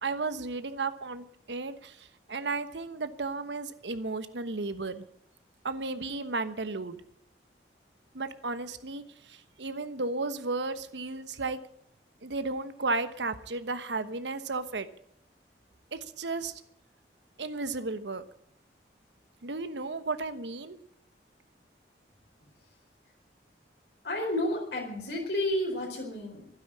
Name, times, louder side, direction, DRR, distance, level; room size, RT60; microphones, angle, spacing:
voice 1, 0.0-5.0 5.6-7.0 8.1-9.0 9.3-11.6 12.2-14.9 15.9-16.5 17.4-18.2 19.4-20.8, right 3 dB, 85° right, 11 dB, 1.1 m, -34 dB
voice 2, 24.0-26.5, left 1 dB, 70° left, 0 dB, 4.4 m, -31 dB
12.5 x 9.8 x 9.6 m, 0.69 s
head